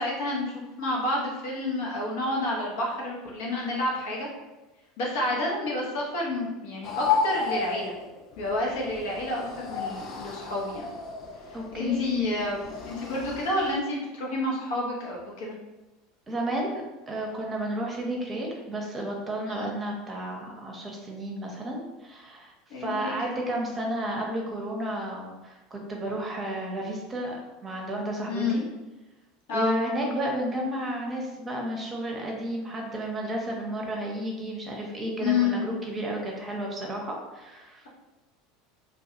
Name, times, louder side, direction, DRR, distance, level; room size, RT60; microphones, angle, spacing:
voice 1, 0.0-4.3 5.0-7.9 8.4-10.9 11.7-15.5 19.5-19.7 22.7-23.1 28.3-28.6 29.5-29.8 35.2-35.6, left 2 dB, 65° left, -2 dB, 0.8 m, -29 dB
sound 1, 6.8-13.8, left 5 dB, 45° left, 0.3 m, -33 dB
voice 2, 11.5-12.2 16.3-28.6 29.5-37.9, right 1 dB, 25° right, 0 dB, 0.7 m, -32 dB
2.3 x 2.3 x 2.8 m, 1.1 s
hypercardioid pair, 80°, 0 cm